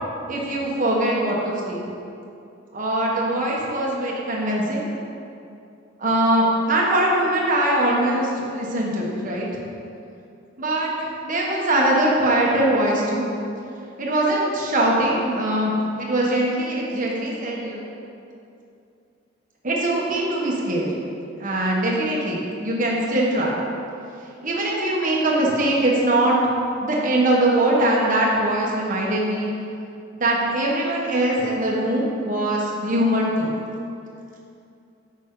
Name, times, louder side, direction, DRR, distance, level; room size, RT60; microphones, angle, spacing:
voice 1, 0.3-1.8 2.7-4.8 6.0-9.5 10.6-13.2 14.0-17.9 19.6-20.9 21.4-23.6 24.4-26.4 26.8-29.5 30.2-33.5, right 1 dB, 45° right, -3 dB, 1.3 m, -22 dB
9.0 x 6.0 x 3.9 m, 2.6 s
head